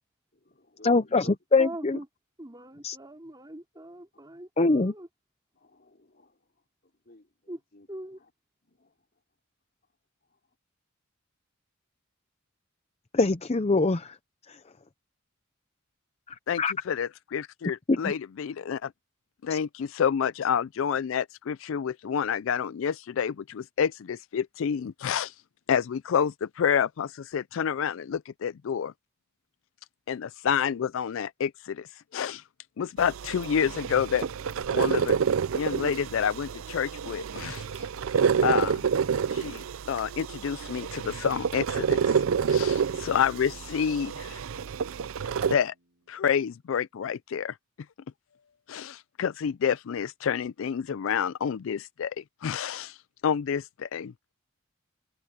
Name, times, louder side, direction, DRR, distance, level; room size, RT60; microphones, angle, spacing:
voice 1, 0.3-1.3 5.6-6.5 6.8-7.9 8.2-8.3 8.6-9.0, left 1 dB, 50° left, 3.8 m, -53 dB
voice 2, 0.8-2.0 2.8-3.0 4.6-4.9 13.1-14.2 14.5-14.6 16.6-16.7 17.9-18.1 19.5-19.6, left 3 dB, 30° left, 0.6 m, -23 dB
voice 3, 1.6-2.0 2.4-5.1 7.5-7.6 7.9-8.2, right 1 dB, 20° right, 3.2 m, -42 dB
voice 4, 16.5-18.9 19.4-25.3 25.7-28.9 30.1-32.4 32.8-34.3 34.7-35.2 35.5-37.9 38.4-38.8 39.3-42.2 42.5-44.4 45.4-45.7 46.1-47.6 48.7-53.0 53.2-54.1, left 7 dB, 65° left, 0.4 m, -29 dB
sound 1, 33.0-45.5, right 6 dB, 75° right, 0.5 m, -28 dB
Bass guitar, 41.7-46.0, right 1 dB, 55° right, 4.9 m, -49 dB
head